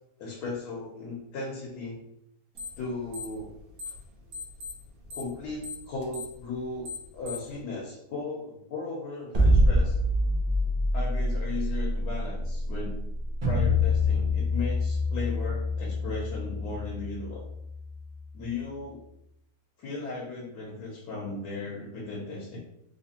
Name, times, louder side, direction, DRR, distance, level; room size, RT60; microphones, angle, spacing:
voice 1, 0.2-2.0 2.8-3.5 5.1-9.9 10.9-13.0 13.4-17.4 18.3-19.0 19.8-22.6, left 3 dB, 70° left, -2 dB, 1.3 m, -36 dB
sound 1, 2.5-2.8 3.1-4.0 4.3-7.6, left 5 dB, 60° right, 1.4 m, -39 dB
sound 2, 9.3-15.5, right 1 dB, 75° right, 0.3 m, -25 dB
sound 3, 13.4-18.4, left 5 dB, 30° right, 1.2 m, -28 dB
3.2 x 3.1 x 2.8 m, 0.79 s
omnidirectional pair, 1.8 m